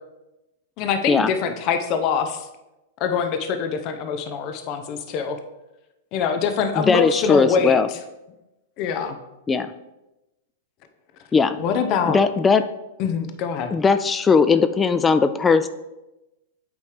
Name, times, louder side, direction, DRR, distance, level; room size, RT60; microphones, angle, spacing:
voice 1, 0.8-2.5 3.0-5.4 6.1-7.8 8.8-9.2 11.6-12.2 13.0-13.7, left 6 dB, 40° left, 8 dB, 0.7 m, -24 dB
voice 2, 6.8-7.9 9.5-9.7 11.3-11.6 12.1-12.6 13.7-15.7, left 5 dB, 15° left, 11 dB, 0.3 m, -18 dB
8.4 x 3.1 x 5.0 m, 0.98 s
hypercardioid pair, 130°, 0 cm